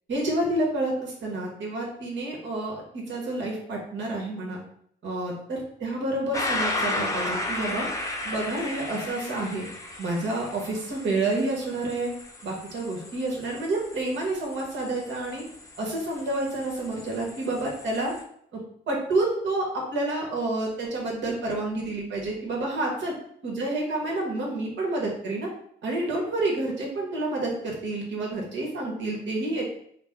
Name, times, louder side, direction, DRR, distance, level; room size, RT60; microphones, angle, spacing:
voice 1, 0.1-4.6 5.0-7.9 8.2-9.6 10.0-12.1 12.4-15.4 15.8-18.1 18.5-18.6 18.9-23.1 23.4-25.5 25.8-29.7, right 2 dB, 65° right, -1 dB, 1.4 m, -29 dB
sound 1, 6.3-18.2, left 2 dB, 15° left, 0.7 m, -35 dB
4.1 x 2.1 x 3.6 m, 0.66 s
cardioid pair, 90°, 20 cm